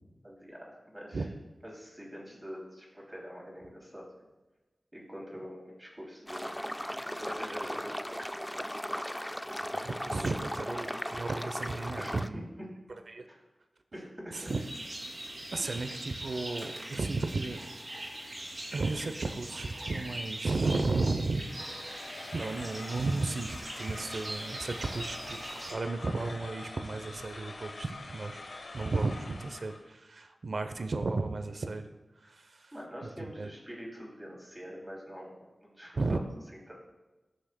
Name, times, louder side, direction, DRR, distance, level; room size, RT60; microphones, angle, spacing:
voice 1, 0.2-1.3 1.6-4.1 4.9-6.5 7.2-8.5 12.0-12.7 13.3-13.4 13.9-14.5 15.6-15.8 32.2-32.3 32.7-36.7, equal, 15° right, -3 dB, 2.8 m, -45 dB
sound 1, 6.3-12.3, equal, 5° left, 0.3 m, -37 dB
voice 2, 9.7-12.4 13.1-13.2 14.3-14.6 15.5-17.6 18.7-21.4 22.3-28.4 28.7-31.9 32.3-32.6 33.2-33.5 36.0-36.2, right 3 dB, 70° right, 8 dB, 0.7 m, -33 dB
sound 2, 14.3-25.7, right 1 dB, 50° right, 2.3 m, -42 dB
sound 3, 21.4-29.9, left 2 dB, 85° left, 1.1 m, -45 dB
15.0 x 6.3 x 2.2 m, 1.1 s
wide cardioid pair, 70°, 0 cm